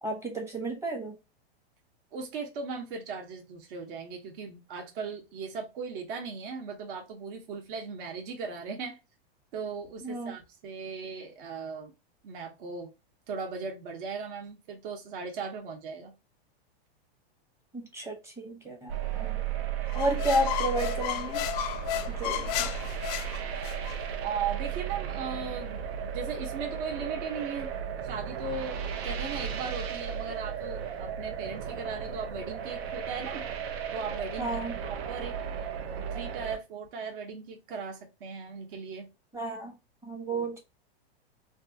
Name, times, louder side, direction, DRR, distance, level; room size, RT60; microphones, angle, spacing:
voice 1, 0.0-1.1 10.0-10.3 17.7-18.9 19.2-19.4 19.9-21.4 22.1-22.7 34.4-34.7 39.3-39.7 40.0-40.6, right 1 dB, 10° right, 0.8 m, -32 dB
voice 2, 2.1-9.0 9.5-11.9 12.2-12.9 13.3-16.1 24.2-27.7 28.0-33.5 33.9-35.4 36.1-39.1 40.3-40.5, right 5 dB, 55° right, 1.0 m, -38 dB
sound 1, 18.9-36.6, right 8 dB, 80° right, 0.7 m, -35 dB
sound 2, 19.9-24.0, left 12 dB, 40° left, 0.4 m, -33 dB
3.4 x 2.4 x 2.6 m
supercardioid pair, 145°, 31 cm